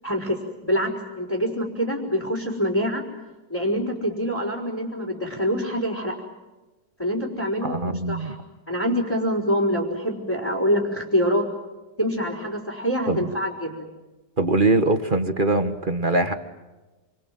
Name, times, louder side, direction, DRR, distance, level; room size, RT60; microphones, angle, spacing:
voice 1, 0.0-3.0 3.5-6.2 7.0-8.3 8.7-11.4 12.0-13.9, equal, 15° left, -2 dB, 5.0 m, -25 dB
voice 2, 7.6-8.4 13.1-13.2 14.4-16.3, right 2 dB, 30° right, 9 dB, 1.5 m, -22 dB
29.5 x 25.0 x 7.8 m, 1.1 s
omnidirectional pair, 2.0 m